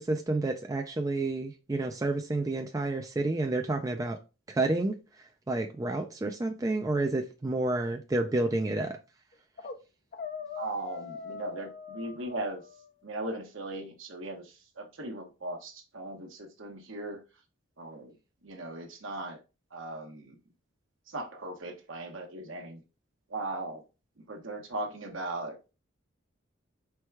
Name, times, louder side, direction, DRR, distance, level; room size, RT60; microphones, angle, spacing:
voice 1, 0.0-4.2 4.5-9.0, right 2 dB, 15° right, 0.3 m, -30 dB
sound 1, 9.3-9.8 10.1-12.9, left 5 dB, 45° left, 0.5 m, -42 dB
voice 2, 10.6-12.6 13.0-17.2 17.8-18.1 18.4-19.4 19.7-20.3 21.1-22.8 23.3-23.8 24.3-25.7, right 2 dB, 70° right, 1.0 m, -38 dB
4.5 x 2.2 x 4.5 m
head